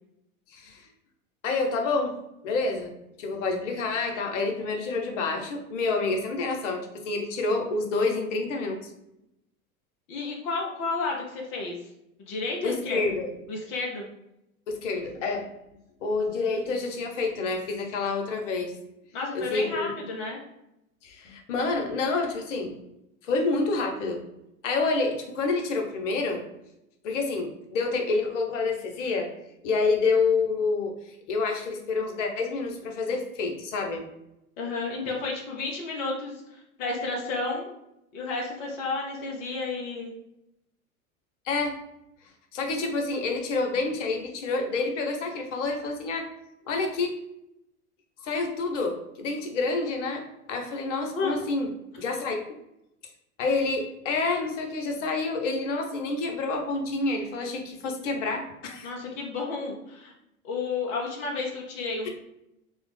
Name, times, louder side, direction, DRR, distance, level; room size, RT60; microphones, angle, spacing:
voice 1, 0.5-0.9 1.4-2.1 2.4-2.9 3.2-8.9 12.6-13.3 14.7-15.5 16.0-18.8 19.3-19.9 21.0-22.7 23.2-24.2 24.6-26.4 27.0-29.3 29.6-34.1 41.4-41.8 42.5-46.3 46.7-47.2 48.2-51.7 52.0-52.4 53.4-58.9, left 3 dB, 60° left, 3 dB, 0.7 m, -28 dB
voice 2, 10.1-11.8 12.2-13.0 13.5-14.1 19.1-20.4 34.6-36.4 36.8-37.7 38.1-40.1 51.1-51.4 58.8-60.1 60.4-62.1, left 3 dB, 20° left, -1 dB, 0.3 m, -31 dB
3.1 x 2.0 x 3.2 m, 0.86 s
figure-of-eight pair, 85°, 43 cm